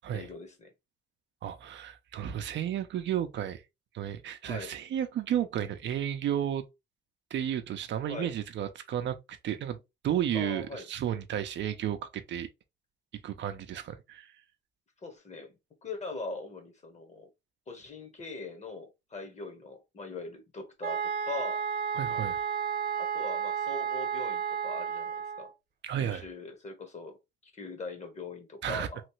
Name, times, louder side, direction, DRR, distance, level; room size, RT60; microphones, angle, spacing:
voice 1, 0.1-0.7 4.4-4.7 8.1-8.3 10.3-10.9 15.0-15.5 15.8-17.3 17.7-21.6 23.0-25.5 25.9-27.2 27.4-29.0, left 3 dB, 35° left, 1.1 m, -41 dB
voice 2, 1.4-3.6 3.9-6.6 7.3-9.8 10.0-12.5 13.2-14.3 21.9-22.4 25.8-26.2 28.6-28.9, right 10 dB, 65° right, 0.5 m, -32 dB
sound 1, 20.8-25.5, right 7 dB, 50° right, 0.9 m, -32 dB
3.2 x 2.4 x 3.0 m
cardioid pair, 90°, 20 cm